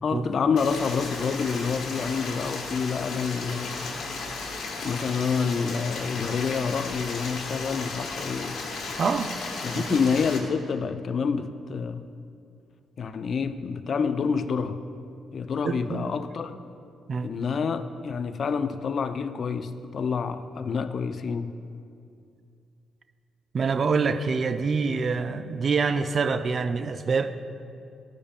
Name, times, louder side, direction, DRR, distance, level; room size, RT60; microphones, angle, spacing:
voice 1, 0.0-3.9 4.8-8.6 9.6-12.1 13.0-14.8 15.3-16.5 17.2-21.6, left 5 dB, 55° left, 11 dB, 0.3 m, -28 dB
Stream, 0.6-10.4, left 3 dB, 75° left, 1.0 m, -35 dB
voice 2, 9.0-9.3 9.8-10.0 15.6-16.1 17.1-17.3 23.5-27.3, right 5 dB, 50° right, 11 dB, 0.3 m, -26 dB
11.5 x 5.1 x 2.4 m, 2.5 s
cardioid pair, 75°, 0 cm